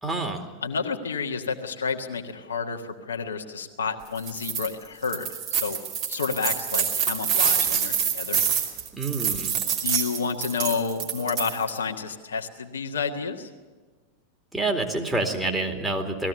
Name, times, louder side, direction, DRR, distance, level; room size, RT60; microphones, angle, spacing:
voice 1, 0.0-0.5 8.9-9.5 14.5-16.3, right 2 dB, 10° right, 1 dB, 2.5 m, -27 dB
voice 2, 0.6-5.8 6.1-8.4 9.8-13.5, left 5 dB, 70° left, 3 dB, 1.5 m, -30 dB
sound 1, 4.2-4.7 5.0-11.8, right 7 dB, 40° right, 2.9 m, -26 dB
19.5 x 15.0 x 10.0 m, 1.4 s
figure-of-eight pair, 90°, 0 cm